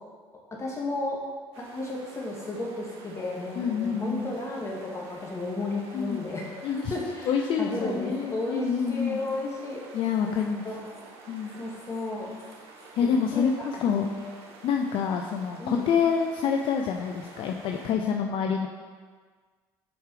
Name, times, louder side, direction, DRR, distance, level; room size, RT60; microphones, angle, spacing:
voice 1, 0.5-1.2 1.6-9.8 10.3-10.4 10.6-11.0 11.6-12.3 13.0-14.3 15.6-15.9, left 2 dB, 30° left, -2 dB, 2.0 m, -33 dB
sound 1, 1.5-17.9, right 3 dB, 70° right, 1.3 m, -49 dB
voice 2, 3.5-4.3 5.9-6.2 6.6-6.9 7.3-9.2 9.9-10.7 11.3-11.5 13.0-13.5 13.8-14.1 14.6-18.7, left 7 dB, 60° left, 2 dB, 0.6 m, -27 dB
7.1 x 4.8 x 4.9 m, 1.5 s
supercardioid pair, 85°, 10 cm